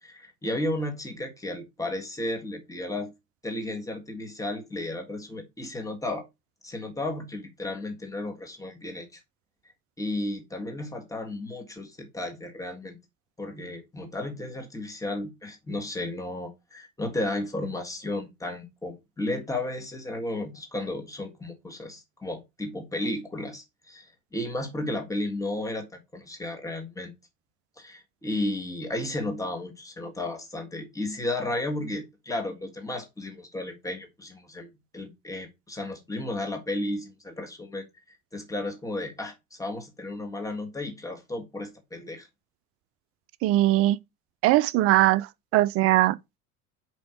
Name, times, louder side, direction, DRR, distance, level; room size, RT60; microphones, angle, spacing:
voice 1, 0.0-3.1 3.4-6.3 6.6-9.2 10.0-13.0 13.4-27.1 27.8-42.3, left 1 dB, 5° left, 1.7 m, -33 dB
voice 2, 43.4-44.0 44.4-45.3 45.5-46.2, right 16 dB, 35° right, 0.5 m, -20 dB
5.1 x 4.5 x 5.9 m
figure-of-eight pair, 70°, 45 cm